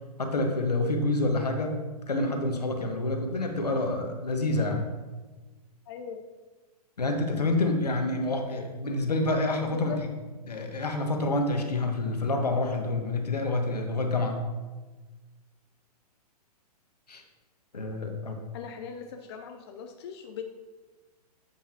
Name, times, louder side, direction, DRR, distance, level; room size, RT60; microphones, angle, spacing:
voice 1, 0.2-1.8 2.1-4.9 7.0-9.9 10.5-14.4 17.1-17.2 17.7-18.4, left 2 dB, 75° left, 4 dB, 1.3 m, -28 dB
voice 2, 5.9-6.2 9.6-10.1 18.5-20.4, left 7 dB, 40° left, 5 dB, 0.6 m, -39 dB
8.2 x 7.0 x 2.8 m, 1.3 s
figure-of-eight pair, 115°, 20 cm